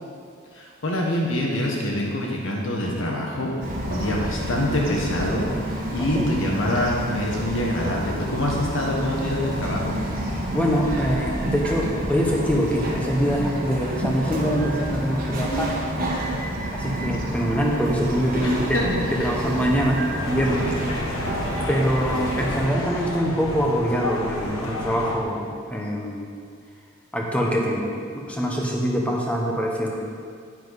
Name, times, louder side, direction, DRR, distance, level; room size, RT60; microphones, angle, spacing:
voice 1, 0.5-3.5 3.9-10.0 17.7-17.9 18.4-19.3, left 1 dB, 75° left, -1 dB, 1.4 m, -26 dB
Bird vocalization bird call bird song, 3.6-22.7, right 1 dB, 45° right, 1.4 m, -29 dB
voice 2, 6.0-6.3 10.5-15.8 16.7-18.8 19.1-21.0 21.5-26.3 27.1-30.0, equal, 5° left, -2 dB, 1.2 m, -24 dB
sound 1, 20.2-25.2, left 1 dB, 90° left, 1.4 m, -31 dB
10.5 x 9.2 x 4.1 m, 2.2 s
head